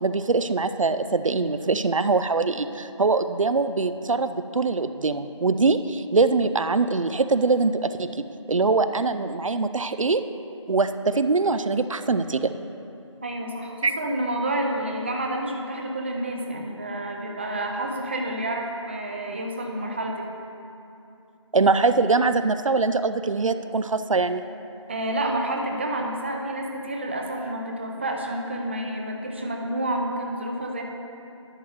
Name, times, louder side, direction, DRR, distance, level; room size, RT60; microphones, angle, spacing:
voice 1, 0.0-8.2 8.5-10.2 10.7-12.5 13.8-13.9 21.5-24.4, right 3 dB, 90° right, 10 dB, 0.4 m, -23 dB
voice 2, 13.2-20.3 24.9-30.8, right 1 dB, 20° right, 1 dB, 0.5 m, -29 dB
11.0 x 7.7 x 3.2 m, 2.8 s
figure-of-eight pair, 160°, 16 cm